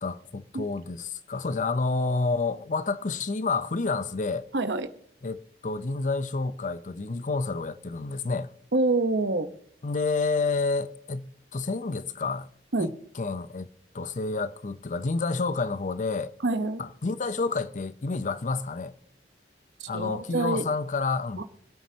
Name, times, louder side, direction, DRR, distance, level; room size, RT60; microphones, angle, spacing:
voice 1, 0.0-4.5 5.2-8.5 9.8-12.5 12.8-13.7 13.9-16.3 16.8-18.9 19.9-21.4, left 3 dB, 45° left, 0.6 m, -29 dB
voice 2, 4.5-4.9 8.7-9.5 12.7-12.9 16.4-16.8 19.8-20.6 21.4-21.5, right 2 dB, 80° right, 1.0 m, -26 dB
25.0 x 9.3 x 2.8 m
head